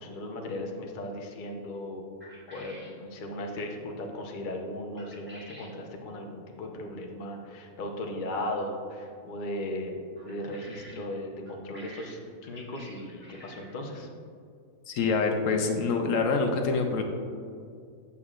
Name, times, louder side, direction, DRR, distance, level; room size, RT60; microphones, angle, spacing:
voice 1, 0.0-2.0 2.5-10.0 10.2-14.1, left 1 dB, 45° left, 1 dB, 0.8 m, -37 dB
sound 1, 2.2-3.0 5.0-5.8 10.2-11.1 11.5-13.8, equal, 10° right, 1.0 m, -50 dB
voice 2, 14.9-17.0, left 4 dB, 75° left, 4 dB, 1.0 m, -26 dB
8.2 x 7.0 x 2.4 m, 2.3 s
omnidirectional pair, 1.4 m